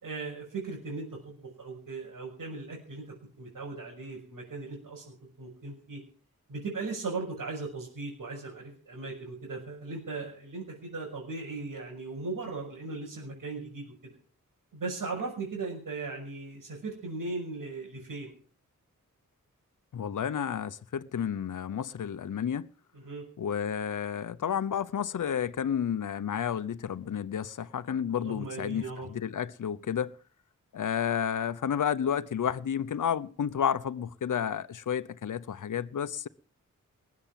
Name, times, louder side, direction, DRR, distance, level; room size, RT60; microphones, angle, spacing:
voice 1, 0.0-6.0 6.5-13.9 14.7-18.3 22.9-23.2 28.1-29.1, right 3 dB, 80° right, 6.5 m, -38 dB
voice 2, 19.9-22.7 23.4-30.1 30.7-36.3, left 8 dB, 70° left, 0.8 m, -31 dB
20.5 x 8.7 x 7.5 m
wide cardioid pair, 90°, 32 cm